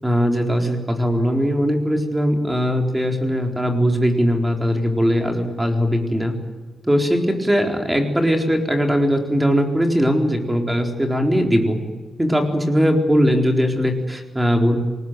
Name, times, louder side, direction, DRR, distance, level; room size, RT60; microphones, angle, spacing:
voice 1, 0.0-6.3 6.9-11.8 12.2-14.8, equal, 10° right, 3 dB, 4.0 m, -20 dB
27.5 x 19.5 x 9.3 m, 1.2 s
wide cardioid pair, 155°, 0 cm